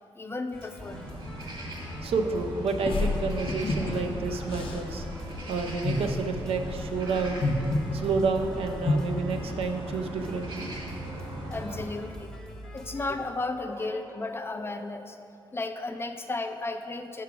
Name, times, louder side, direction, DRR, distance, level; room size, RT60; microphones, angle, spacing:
voice 1, 0.2-1.0 3.8-4.1 5.3-5.5 11.5-12.3 12.6-15.2 15.5-17.2, left 2 dB, 25° left, 7 dB, 0.4 m, -34 dB
sound 1, 0.5-13.1, left 1 dB, 5° left, 0.8 m, -43 dB
sound 2, 0.8-11.9, right 1 dB, 55° right, 1.4 m, -39 dB
voice 2, 2.0-5.1 5.5-7.5 7.9-10.7, right 4 dB, 80° right, 5 dB, 0.5 m, -29 dB
sound 3, 2.9-8.9, left 2 dB, 65° left, 0.6 m, -30 dB
5.8 x 4.7 x 5.9 m, 2.7 s
cardioid pair, 100°, 10 cm